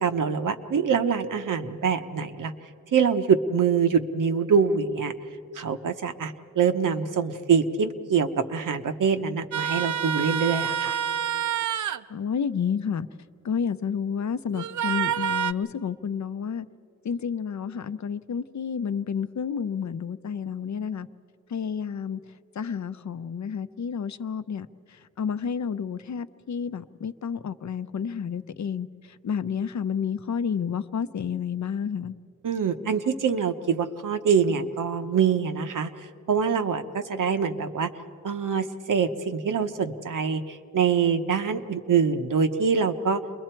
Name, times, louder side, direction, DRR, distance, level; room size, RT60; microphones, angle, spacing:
voice 1, 0.0-2.5 2.9-5.1 5.5-11.0 32.4-35.9 36.3-37.9 38.2-43.2, right 6 dB, 85° right, 7 dB, 1.0 m, -24 dB
sound 1, 9.5-12.0 14.5-15.5, right 9 dB, 70° right, 0.5 m, -27 dB
voice 2, 12.1-13.1 13.4-16.7 17.0-21.1 21.5-22.2 22.5-32.1, left 7 dB, 65° left, 12 dB, 0.6 m, -30 dB
29.0 x 22.0 x 4.5 m, 2.4 s
wide cardioid pair, 110°, 31 cm